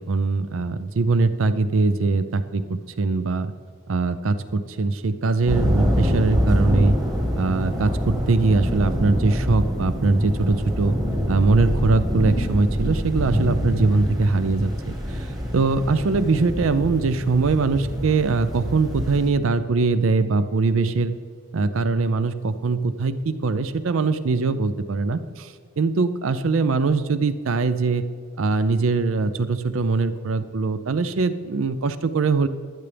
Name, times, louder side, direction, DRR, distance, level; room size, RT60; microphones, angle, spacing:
voice 1, 0.0-3.5 3.9-7.0 7.4-11.0 11.3-21.1 21.5-28.0 28.4-32.5, right 3 dB, 75° right, 12 dB, 0.5 m, -22 dB
sound 1, 5.5-19.3, equal, 20° right, 1.6 m, -25 dB
15.5 x 12.0 x 3.4 m, 2.1 s
head